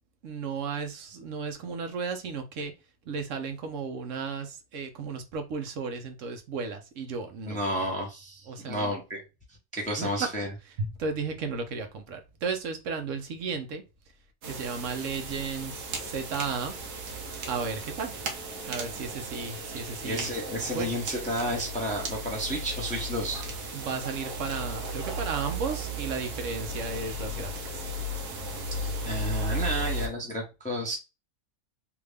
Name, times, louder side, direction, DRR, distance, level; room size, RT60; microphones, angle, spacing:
voice 1, 0.2-2.7 3.1-7.6 8.5-9.0 10.0-10.3 10.8-13.8 14.5-16.7 17.5-18.2 18.7-20.9 23.7-27.8, right 5 dB, 60° right, 1.0 m, -34 dB
voice 2, 7.5-9.2 9.7-10.5 20.0-23.4 28.8-31.0, equal, 5° left, 0.8 m, -31 dB
sound 1, 14.4-30.1, right 1 dB, 80° right, 1.4 m, -35 dB
3.6 x 2.6 x 3.3 m
omnidirectional pair, 1.6 m